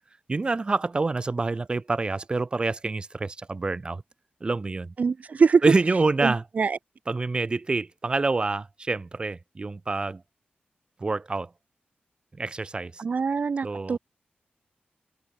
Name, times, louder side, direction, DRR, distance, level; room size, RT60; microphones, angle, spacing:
voice 1, 0.3-4.0 4.4-4.9 5.6-6.4 7.1-10.2 11.0-11.5 12.3-13.0 13.6-14.0, right 3 dB, 25° right, 3.4 m, -27 dB
voice 2, 5.0-5.6 6.2-6.8 13.0-14.0, right 5 dB, 45° right, 1.6 m, -23 dB
wide cardioid pair, 160°, 4 cm